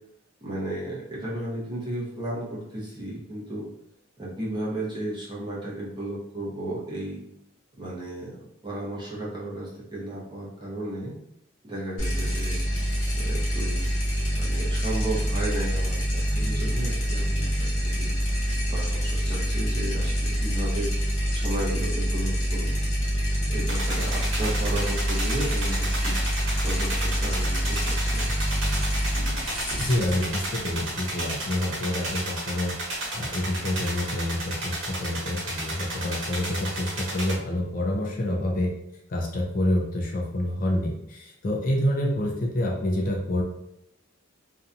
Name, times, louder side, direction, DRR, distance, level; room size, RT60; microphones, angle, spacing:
voice 1, 0.4-3.7 4.2-7.2 7.8-8.3 8.6-11.1 11.6-12.6 13.2-13.8 14.4-18.1 18.7-20.9 21.3-22.8 23.5-26.2 26.6-28.3, right 1 dB, 20° right, -6 dB, 0.7 m, -34 dB
sound 1, 12.0-31.3, equal, 75° left, 0.9 m, -26 dB
sound 2, 23.7-37.3, right 1 dB, 75° right, 1.1 m, -33 dB
voice 2, 29.8-32.8 33.1-38.7 39.1-43.4, left 1 dB, 40° left, -1 dB, 0.4 m, -27 dB
2.7 x 2.2 x 2.5 m, 0.83 s
head